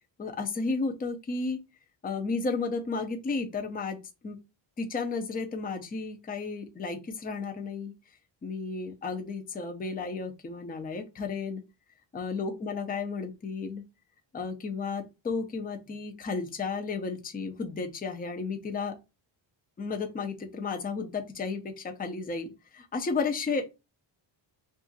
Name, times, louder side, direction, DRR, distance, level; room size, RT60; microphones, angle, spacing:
voice 1, 0.2-1.6 2.0-4.0 4.2-4.4 4.8-7.9 8.4-11.6 12.1-13.8 14.3-19.0 19.8-23.7, left 4 dB, 20° left, 0.5 m, -33 dB
2.6 x 2.4 x 3.9 m
cardioid pair, 135°, 47 cm